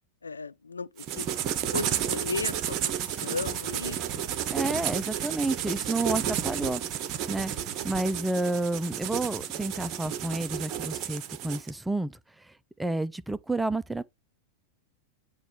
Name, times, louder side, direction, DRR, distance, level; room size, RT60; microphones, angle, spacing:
voice 1, 0.2-1.3 1.7-4.2 7.5-7.9, left 4 dB, 75° left, 0.4 m, -36 dB
sound 1, 1.0-11.7, right 10 dB, 35° right, 0.7 m, -32 dB
voice 2, 4.5-7.5 7.8-12.2 12.8-14.0, right 2 dB, 5° right, 0.4 m, -30 dB
8.2 x 2.9 x 4.7 m
figure-of-eight pair, 90°, 0 cm